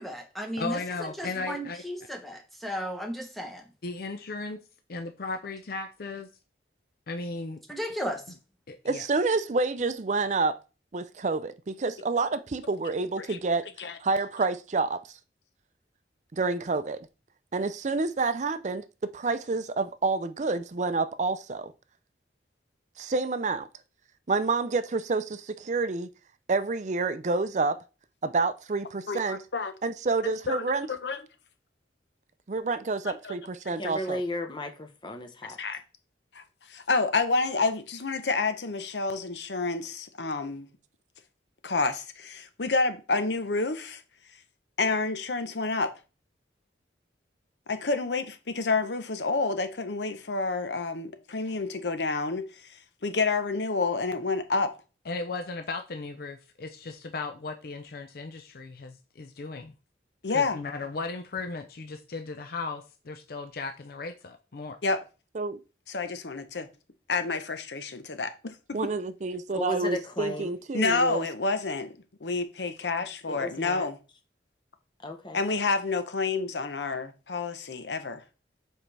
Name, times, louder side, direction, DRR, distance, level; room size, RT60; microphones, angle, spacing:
voice 1, 0.0-3.7 7.7-8.3, equal, ahead, 0.9 m, -35 dB
voice 2, 0.6-1.8 3.8-4.6 4.9-6.3 7.1-7.6 8.7-9.1 55.1-59.7 60.3-64.8, left 3 dB, 55° left, 0.5 m, -36 dB
voice 3, 8.8-10.6 10.9-13.7 14.0-15.0 16.3-17.1 17.5-21.7 23.0-23.7 24.3-26.1 26.5-27.8 28.2-29.4 29.8-30.9 32.5-34.2 65.3-65.6 68.7-71.3, right 3 dB, 40° right, 0.5 m, -28 dB
voice 4, 29.1-29.7 30.2-31.2 33.1-33.4 33.7-33.8 35.6-35.8 36.3-36.4 36.7-40.7 41.6-44.0 44.8-45.9 47.7-52.4 53.0-54.7 60.2-60.6 64.8-65.0 65.9-66.7 67.1-68.8 70.7-71.9 72.2-73.9 75.3-78.2, left 3 dB, 75° left, 0.9 m, -29 dB
voice 5, 33.8-35.6 69.5-70.5 73.3-73.9 75.0-75.4, left 1 dB, 25° left, 0.9 m, -34 dB
7.4 x 4.5 x 3.3 m
head